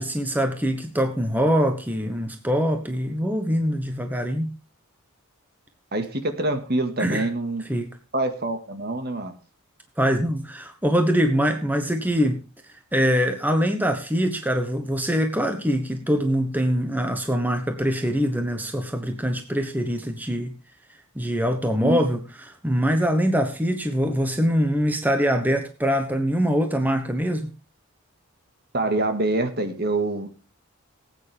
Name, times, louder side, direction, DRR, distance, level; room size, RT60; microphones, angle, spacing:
voice 1, 0.0-4.5 7.0-7.3 7.7-7.9 10.0-12.4 12.9-20.5 21.2-22.2 22.5-27.5, equal, 10° right, 6 dB, 1.1 m, -23 dB
voice 2, 5.9-7.6 8.1-9.3 21.8-22.0 28.7-30.3, right 2 dB, 45° right, 8 dB, 1.8 m, -25 dB
18.5 x 9.1 x 3.5 m, 0.34 s
head